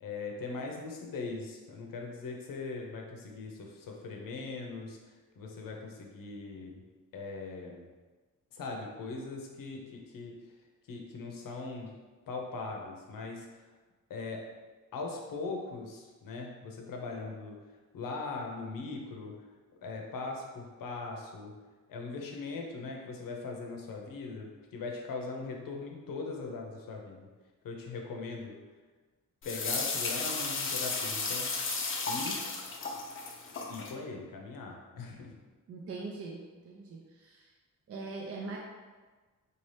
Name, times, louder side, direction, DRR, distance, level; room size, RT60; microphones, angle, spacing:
voice 1, 0.0-6.8 7.1-7.9 8.5-10.4 10.9-11.9 12.3-13.7 14.1-14.5 14.9-17.7 17.9-19.4 19.8-21.6 21.9-27.3 27.6-28.6 29.4-31.5 32.1-32.5 33.7-35.4, left 3 dB, 85° left, 1 dB, 0.7 m, -40 dB
sound 1, 29.4-33.9, left 4 dB, 40° left, 0.5 m, -34 dB
voice 2, 35.7-37.5 37.9-38.6, right 3 dB, 45° right, -1 dB, 0.5 m, -42 dB
4.2 x 2.8 x 3.2 m, 1.3 s
wide cardioid pair, 170°, 33 cm